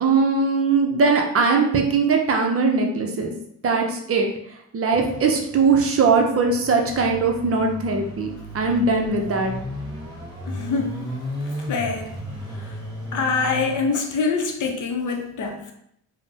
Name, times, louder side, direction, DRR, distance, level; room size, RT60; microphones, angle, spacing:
voice 1, 0.0-3.3 3.6-4.3 4.7-8.3 8.5-9.5 15.5-15.6, right 4 dB, 40° right, 2 dB, 0.5 m, -20 dB
sound 1, 4.9-13.8, equal, 10° left, 1.2 m, -35 dB
voice 2, 10.5-11.0 11.7-12.1 12.6-12.7 13.1-15.7, left 4 dB, 50° left, 3 dB, 0.6 m, -25 dB
3.3 x 2.1 x 2.7 m, 0.72 s
cardioid pair, 85°, 38 cm